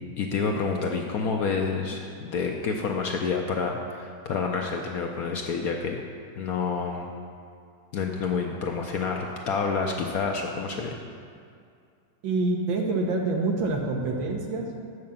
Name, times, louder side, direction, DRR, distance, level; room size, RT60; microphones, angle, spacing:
voice 1, 0.2-6.0 6.3-7.1 7.9-11.0, left 5 dB, 70° left, 2 dB, 0.9 m, -28 dB
voice 2, 12.2-14.7, right 3 dB, 85° right, 1 dB, 1.8 m, -26 dB
7.6 x 6.4 x 7.1 m, 2.3 s
omnidirectional pair, 2.1 m